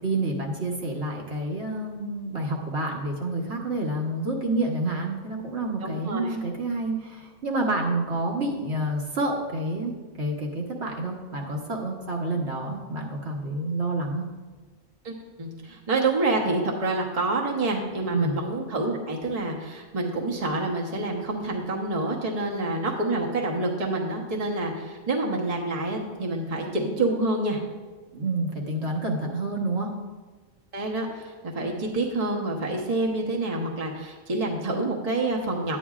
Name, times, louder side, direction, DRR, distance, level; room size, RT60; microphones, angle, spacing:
voice 1, 0.0-14.2 18.1-18.4 28.1-29.9, right 2 dB, 50° right, -1 dB, 1.3 m, -28 dB
voice 2, 5.8-6.3 15.0-27.6 30.7-35.8, right 2 dB, 30° right, -1 dB, 0.9 m, -27 dB
10.5 x 9.3 x 2.4 m, 1.4 s
omnidirectional pair, 1.5 m